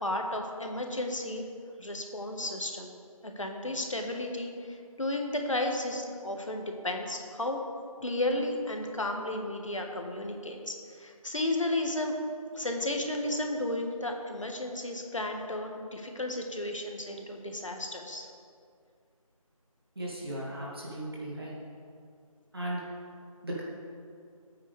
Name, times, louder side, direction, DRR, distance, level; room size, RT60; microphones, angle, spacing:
voice 1, 0.0-1.4 1.8-2.9 3.2-7.6 8.0-12.2 12.5-18.3, left 1 dB, 60° left, 3 dB, 1.6 m, -33 dB
voice 2, 20.0-21.5 22.5-22.8 23.4-23.6, right 1 dB, 40° right, -6 dB, 2.3 m, -36 dB
16.0 x 8.8 x 3.5 m, 2.3 s
figure-of-eight pair, 165°, 19 cm